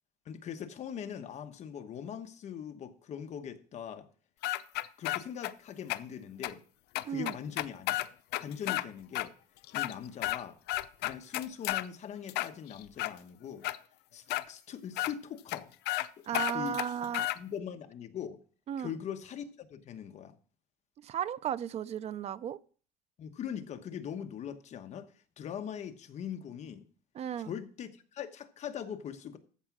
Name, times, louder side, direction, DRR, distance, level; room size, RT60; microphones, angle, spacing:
voice 1, 0.2-4.1 5.0-6.6 7.1-8.0 8.4-9.3 9.7-10.6 11.0-13.7 14.1-15.7 16.2-16.8 17.3-18.4 18.8-20.3 23.2-26.9 27.4-29.4, left 8 dB, 45° left, 1.1 m, -41 dB
sound 1, 4.4-5.5 5.9-6.0 6.4-6.5 6.9-8.8 9.1-9.3 9.6-10.4 10.7-11.9 12.3-13.1 13.6-13.8 14.3-14.4 15.0-15.1 15.5-15.6 15.9-16.1 16.3-17.4, left 17 dB, 90° left, 0.6 m, -32 dB
voice 2, 7.0-7.4 16.3-17.3 18.7-18.9 21.0-22.6 27.1-27.5, right 9 dB, 40° right, 0.4 m, -35 dB
14.0 x 4.9 x 6.1 m
cardioid pair, 155°, 16 cm